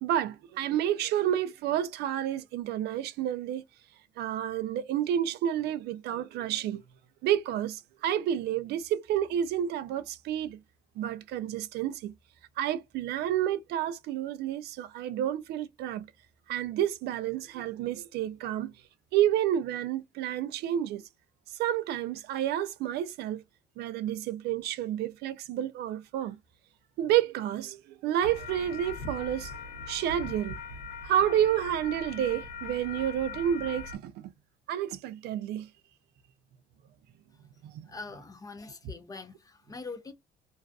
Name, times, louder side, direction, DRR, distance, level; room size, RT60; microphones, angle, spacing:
voice 1, 0.0-3.6 4.2-6.8 7.2-10.6 11.0-12.1 12.6-16.0 16.5-18.7 19.1-21.0 21.6-23.4 23.8-26.4 27.0-29.5 29.9-30.6 31.0-34.3 34.7-35.7, right 11 dB, 75° right, 0.4 m, -30 dB
sound 1, 28.2-34.0, left 4 dB, 80° left, 0.6 m, -41 dB
voice 2, 37.8-40.1, left 3 dB, 20° left, 0.6 m, -43 dB
2.4 x 2.3 x 2.3 m
cardioid pair, 110°, 17 cm